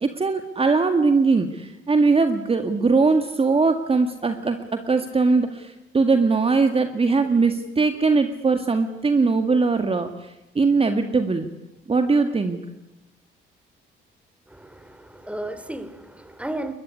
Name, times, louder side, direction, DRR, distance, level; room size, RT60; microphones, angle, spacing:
voice 1, 0.0-10.1 10.6-11.5 11.9-12.6, right 4 dB, 30° right, 7 dB, 2.0 m, -20 dB
voice 2, 14.5-16.7, right 1 dB, 5° right, 12 dB, 3.0 m, -34 dB
22.0 x 22.0 x 9.8 m, 0.95 s
cardioid pair, 90°, 20 cm